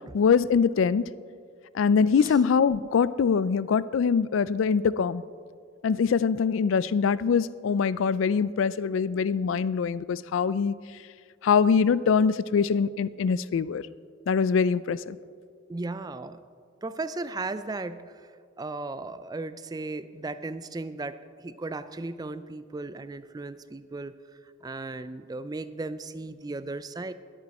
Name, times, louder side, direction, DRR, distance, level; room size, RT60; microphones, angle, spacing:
voice 1, 0.1-1.1 1.7-5.2 5.8-10.7 11.4-13.8 14.3-15.2, left 6 dB, 75° left, 18 dB, 0.4 m, -23 dB
voice 2, 15.7-16.4 16.8-18.3 18.6-24.2 24.6-27.1, right 3 dB, 20° right, 13 dB, 0.4 m, -36 dB
20.5 x 8.9 x 4.2 m, 2.2 s
head